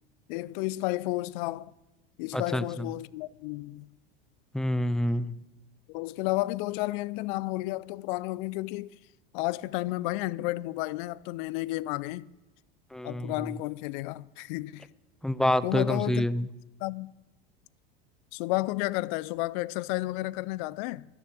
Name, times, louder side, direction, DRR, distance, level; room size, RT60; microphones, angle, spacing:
voice 1, 0.3-1.7 2.2-3.9 5.9-8.9 9.3-12.3 13.0-14.9 15.6-16.3 16.8-17.1 18.3-21.1, left 19 dB, 55° left, 0.6 m, -32 dB
voice 2, 2.3-2.9 4.5-5.4 12.9-13.5 15.2-16.5, left 1 dB, ahead, 0.6 m, -28 dB
13.5 x 11.0 x 8.9 m
hypercardioid pair, 85°, 30 cm